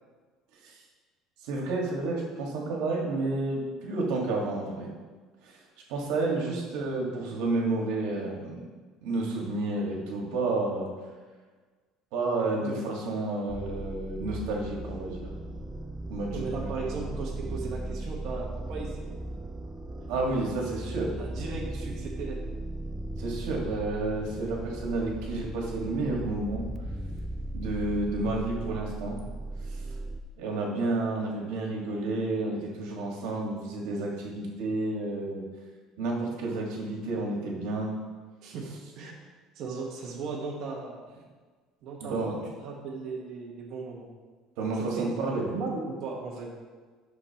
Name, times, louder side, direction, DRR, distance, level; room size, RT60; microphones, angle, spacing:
voice 1, 1.4-4.9 5.4-5.6 5.9-8.6 9.0-10.9 12.1-15.3 16.1-16.7 20.1-21.1 23.2-26.7 27.5-29.2 29.7-29.8 30.4-35.4 36.0-37.9 42.0-42.4 44.6-45.5, right 2 dB, 85° right, -1 dB, 1.6 m, -30 dB
sound 1, 13.5-30.2, right 1 dB, 10° right, 0.4 m, -37 dB
voice 2, 16.3-19.0 21.2-22.4 38.4-38.7 38.9-39.1 39.5-41.0 41.8-42.4 42.6-44.1 45.0-46.5, right 4 dB, 50° right, -3 dB, 1.3 m, -36 dB
11.0 x 6.3 x 2.9 m, 1.4 s
cardioid pair, 170°, 0 cm